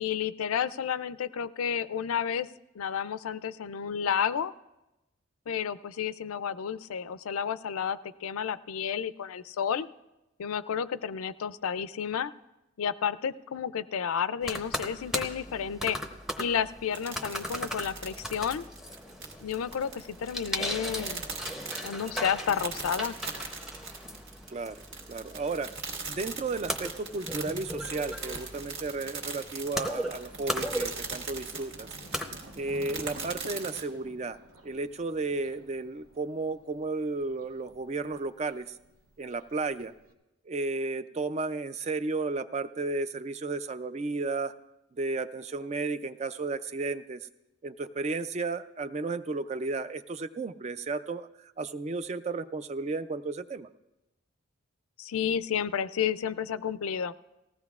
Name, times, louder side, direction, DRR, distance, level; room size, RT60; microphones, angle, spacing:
voice 1, 0.0-2.5 2.8-4.5 5.5-9.9 10.4-12.3 12.8-16.0 16.4-18.7 19.4-21.2 21.8-23.1 55.0-57.1, left 7 dB, 85° left, 15 dB, 0.4 m, -31 dB
sound 1, 14.4-32.8, equal, ahead, 0.7 m, -38 dB
sound 2, 16.9-33.8, right 4 dB, 55° right, 1.8 m, -40 dB
voice 2, 24.5-24.8 25.1-31.9 32.6-34.4 34.6-38.8 39.2-39.9 40.5-44.5 45.0-47.3 47.6-53.7, right 3 dB, 30° right, 12 dB, 0.3 m, -33 dB
Thunder, 30.1-40.1, right 1 dB, 90° right, 1.1 m, -52 dB
19.0 x 16.0 x 2.4 m, 0.99 s
head